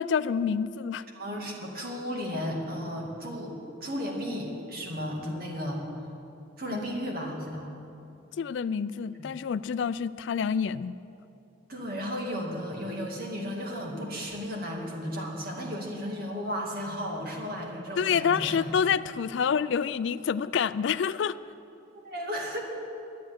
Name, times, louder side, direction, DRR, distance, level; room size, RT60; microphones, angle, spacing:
voice 1, 0.0-1.0 6.7-6.8 8.4-11.0 18.0-21.4, left 7 dB, 65° left, 16 dB, 0.3 m, -27 dB
voice 2, 1.1-5.8 6.6-7.7 11.7-18.6 22.0-22.6, equal, 50° right, -1 dB, 2.3 m, -34 dB
11.5 x 9.2 x 9.6 m, 2.7 s
head